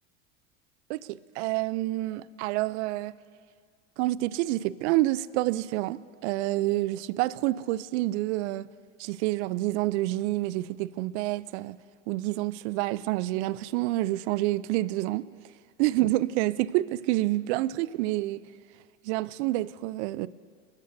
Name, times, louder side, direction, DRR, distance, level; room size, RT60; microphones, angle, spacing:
voice 1, 0.9-3.1 4.0-8.7 9.0-11.8 12.1-15.3 15.8-18.4 19.0-20.3, right 17 dB, 60° right, 0.6 m, -28 dB
27.5 x 13.5 x 2.7 m
hypercardioid pair, 90°, 39 cm